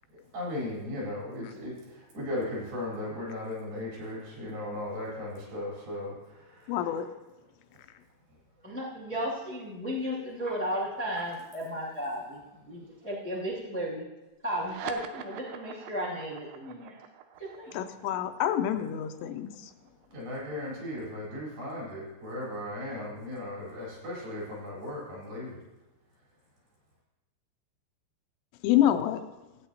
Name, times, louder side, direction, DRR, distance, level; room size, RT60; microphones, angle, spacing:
voice 1, 0.3-7.0 17.7-17.8 20.1-25.6, left 1 dB, 55° right, -6 dB, 5.8 m, -37 dB
voice 2, 6.7-7.1 17.7-19.7 28.6-29.2, left 11 dB, 85° left, 8 dB, 2.7 m, -27 dB
voice 3, 8.6-14.0 14.4-17.0 17.4-17.7, equal, 10° left, -8 dB, 0.5 m, -34 dB
sound 1, 14.5-21.4, right 8 dB, 85° right, 2.6 m, -46 dB
16.5 x 8.9 x 2.8 m, 1.1 s
omnidirectional pair, 5.1 m